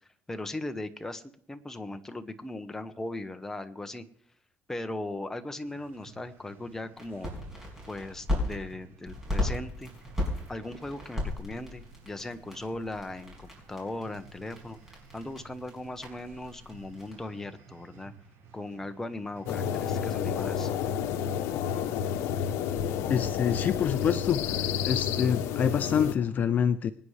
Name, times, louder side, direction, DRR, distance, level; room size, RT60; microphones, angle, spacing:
voice 1, 0.3-1.2 1.5-4.0 4.7-7.3 7.9-9.9 10.5-18.1 18.5-20.7, left 2 dB, 10° left, 7 dB, 1.0 m, -38 dB
sound 1, 5.6-20.0, right 5 dB, 65° right, 5.8 m, -54 dB
sound 2, 7.0-8.6 9.0-17.1, left 1 dB, 10° right, 5.8 m, -36 dB
sound 3, 19.5-26.1, left 8 dB, 80° left, 0.9 m, -30 dB
voice 2, 23.1-26.9, left 8 dB, 40° left, 11 dB, 0.5 m, -27 dB
25.5 x 9.3 x 3.3 m, 0.65 s
cardioid pair, 140°, 5 cm